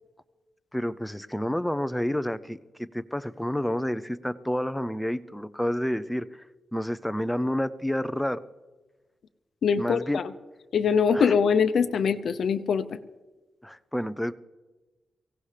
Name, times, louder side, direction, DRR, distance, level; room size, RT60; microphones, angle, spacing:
voice 1, 0.7-2.6 2.9-6.4 6.7-8.4 9.8-10.2 11.1-11.3 13.6-14.3, equal, 5° left, 13 dB, 0.5 m, -29 dB
voice 2, 9.6-10.3 10.7-13.0, left 6 dB, 65° left, 8 dB, 0.6 m, -23 dB
23.5 x 17.0 x 3.3 m, 1.2 s
wide cardioid pair, 140°, 0 cm